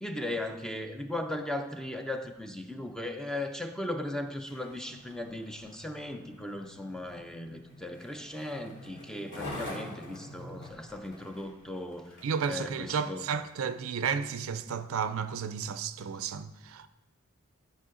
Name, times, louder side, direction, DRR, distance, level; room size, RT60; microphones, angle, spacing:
voice 1, 0.0-13.2, left 1 dB, 5° left, 0.4 m, -37 dB
Skateboard, 4.4-13.2 13.8-13.9, left 1 dB, 60° left, 2.9 m, -46 dB
voice 2, 12.2-16.9, right 6 dB, 70° right, 0.4 m, -32 dB
12.5 x 4.6 x 3.7 m
head